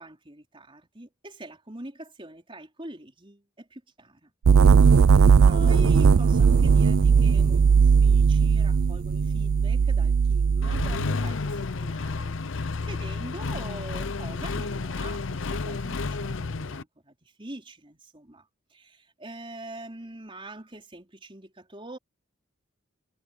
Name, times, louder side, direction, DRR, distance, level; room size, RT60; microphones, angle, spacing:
voice 1, 0.0-4.3 4.8-5.1 5.4-22.0, right 1 dB, 25° right, 4.2 m, -43 dB
sound 1, 4.4-11.2, right 5 dB, 90° right, 0.4 m, -18 dB
Accelerating revving vroom, 10.6-16.8, left 3 dB, 65° left, 0.7 m, -31 dB
head